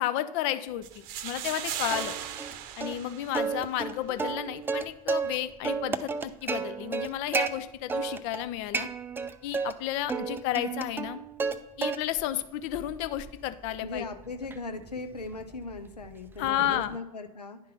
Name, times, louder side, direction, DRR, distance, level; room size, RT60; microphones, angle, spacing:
voice 1, 0.0-2.1 2.8-8.9 9.4-11.2 11.8-14.0 16.4-16.9, left 12 dB, 50° left, 12 dB, 0.5 m, -32 dB
sound 1, 0.8-3.8, right 10 dB, 45° right, 0.8 m, -37 dB
Plucked string instrument, 1.9-2.5 2.8-2.9 3.3-5.4 5.6-7.5 7.9-8.4 8.7-9.7 10.1-11.6 11.8-12.3 12.7-17.0, right 5 dB, 10° right, 0.4 m, -32 dB
voice 2, 13.8-17.6, left 3 dB, 85° left, 7 dB, 0.7 m, -38 dB
10.5 x 3.7 x 4.2 m, 0.96 s
figure-of-eight pair, 80°, 20 cm